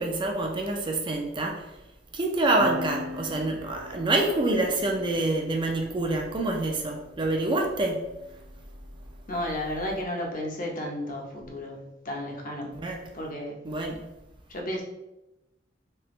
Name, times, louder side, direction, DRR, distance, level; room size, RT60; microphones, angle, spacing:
voice 1, 0.0-1.7 2.1-8.0 12.7-13.0 13.6-14.0, right 2 dB, 25° right, 2 dB, 0.4 m, -27 dB
sound 1, 2.6-9.5 10.5-12.3, left 1 dB, 85° right, 0.6 m, -43 dB
voice 2, 9.3-12.7 13.1-13.6 14.5-14.8, left 1 dB, 45° left, 0 dB, 0.7 m, -33 dB
3.3 x 2.8 x 3.0 m, 0.94 s
head